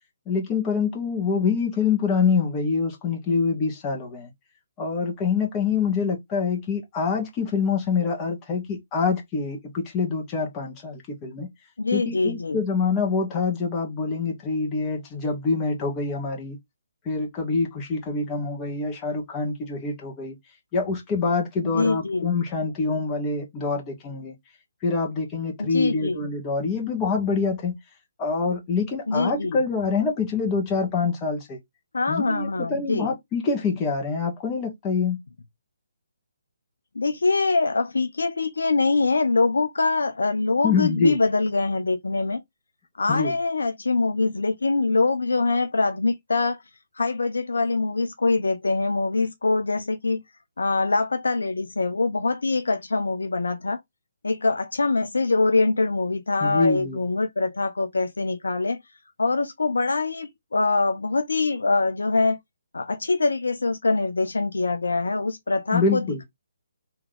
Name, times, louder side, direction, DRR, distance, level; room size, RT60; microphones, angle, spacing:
voice 1, 0.3-4.3 4.8-11.5 11.9-16.6 17.0-20.4 20.7-24.3 24.8-27.8 28.2-31.6 32.1-35.2 40.6-41.2 43.1-43.3 56.4-57.0 65.7-66.2, left 4 dB, 20° left, 1.6 m, -25 dB
voice 2, 11.8-12.6 21.6-22.3 25.6-26.3 29.1-29.6 31.9-33.1 36.9-42.4 43.0-46.6 47.0-50.2 50.6-53.8 54.2-58.8 59.2-62.4 62.7-66.2, left 3 dB, 70° left, 0.6 m, -24 dB
3.6 x 3.0 x 3.4 m
figure-of-eight pair, 140°, 0 cm